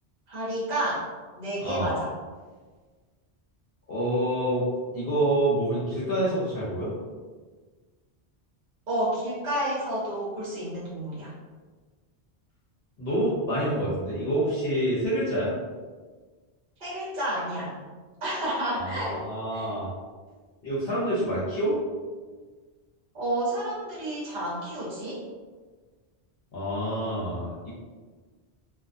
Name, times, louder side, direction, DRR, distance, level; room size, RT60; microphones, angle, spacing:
voice 1, 0.3-1.1 1.4-2.1 8.9-11.3 16.8-17.8 18.2-19.2 19.5-19.7 23.1-25.2, right 1 dB, 50° right, -7 dB, 0.8 m, -30 dB
voice 2, 3.9-4.7 4.9-6.9 13.0-15.5 18.8-19.9 20.6-21.7 26.5-27.7, right 1 dB, 65° left, -9 dB, 0.9 m, -27 dB
2.3 x 2.2 x 2.5 m, 1.4 s
omnidirectional pair, 1.1 m